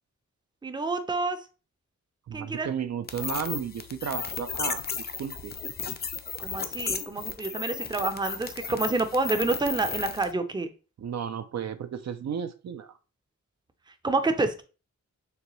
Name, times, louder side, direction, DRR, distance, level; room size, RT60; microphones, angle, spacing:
voice 1, 0.6-1.4 2.3-2.7 6.4-10.7 14.0-14.6, right 3 dB, 15° right, 8 dB, 0.5 m, -28 dB
voice 2, 2.3-4.8 5.2-5.5 11.0-13.0, right 7 dB, 65° right, 10 dB, 0.5 m, -33 dB
sound 1, 3.1-10.3, left 5 dB, 35° left, 0.5 m, -34 dB
6.6 x 2.3 x 3.0 m, 0.34 s
wide cardioid pair, 105°, 30 cm